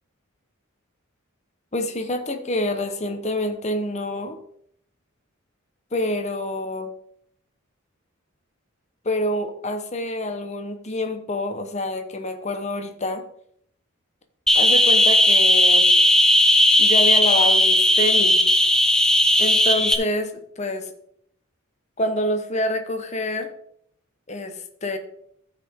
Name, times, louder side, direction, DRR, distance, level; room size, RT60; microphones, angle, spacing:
voice 1, 1.7-4.4 5.9-6.9 9.0-13.2 14.5-15.9 16.8-18.4 19.4-20.9 22.0-23.5 24.3-25.0, left 1 dB, 35° left, 6 dB, 1.0 m, -27 dB
sound 1, 14.5-19.9, left 1 dB, 5° left, 0.5 m, -16 dB
14.5 x 5.0 x 3.6 m, 0.70 s
head